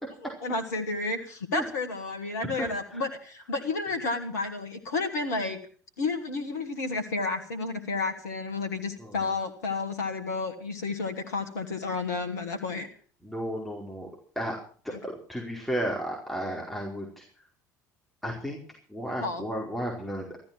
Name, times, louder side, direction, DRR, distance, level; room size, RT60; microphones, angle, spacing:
voice 1, 0.4-5.6 6.0-12.9 14.9-15.0 19.2-19.4, left 3 dB, 70° left, 6 dB, 2.0 m, -31 dB
voice 2, 13.2-14.1 14.3-14.6 14.8-17.2 18.2-18.6 18.9-20.4, equal, ahead, -3 dB, 4.8 m, -33 dB
14.5 x 13.0 x 6.1 m, 0.43 s
figure-of-eight pair, 60°, 9 cm